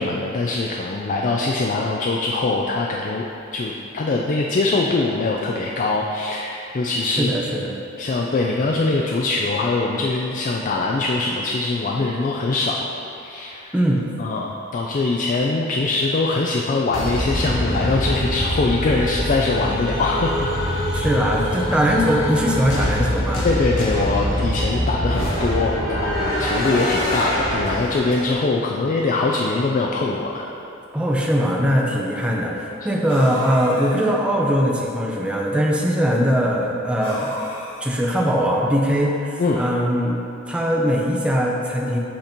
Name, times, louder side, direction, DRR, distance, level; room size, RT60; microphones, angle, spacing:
voice 1, 0.0-3.3 3.5-12.8 13.2-13.8 14.2-20.6 23.4-30.5 39.4-39.6, left 3 dB, 40° left, -1 dB, 0.4 m, -22 dB
voice 2, 7.0-7.7 13.7-14.1 20.9-23.5 30.9-37.3 37.8-40.2 40.5-42.0, equal, 5° right, -2 dB, 0.6 m, -21 dB
sound 1, 16.9-28.3, equal, 75° left, 1.2 m, -24 dB
sound 2, 26.6-27.3 27.6-28.4 29.2-29.3 29.6-29.7 30.6-30.7 33.1-34.1 37.0-38.1, equal, 25° left, 1.4 m, -33 dB
8.2 x 2.9 x 5.1 m, 2.8 s
head